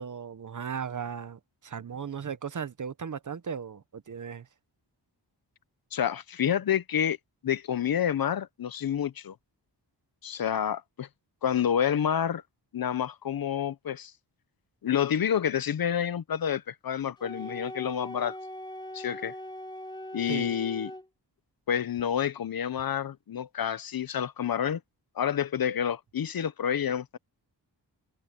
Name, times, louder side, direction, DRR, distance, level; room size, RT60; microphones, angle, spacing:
voice 1, 0.0-4.5 20.3-20.5, right 7 dB, 45° right, 0.8 m, -36 dB
voice 2, 5.9-7.2 7.4-9.3 10.2-11.1 11.4-12.4 12.7-14.1 14.8-18.4 18.9-19.4 20.1-20.9 21.7-24.8 25.2-27.2, left 9 dB, 55° left, 0.7 m, -28 dB
Wind instrument woodwind instrument, 17.2-21.1, left 1 dB, 10° left, 3.3 m, -40 dB
wide cardioid pair, 175°, 43 cm